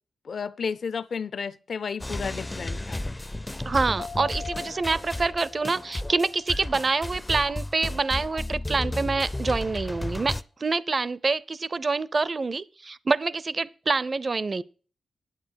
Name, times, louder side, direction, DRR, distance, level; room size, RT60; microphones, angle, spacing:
voice 1, 0.2-3.0, left 6 dB, 60° left, 0.6 m, -32 dB
sound 1, 2.0-10.4, left 1 dB, 15° left, 0.4 m, -33 dB
voice 2, 3.6-14.6, right 3 dB, 40° right, 0.5 m, -26 dB
sound 2, 4.0-7.7 8.0-8.1, left 5 dB, 80° left, 1.5 m, -44 dB
9.1 x 8.4 x 4.6 m
wide cardioid pair, 100°, 0 cm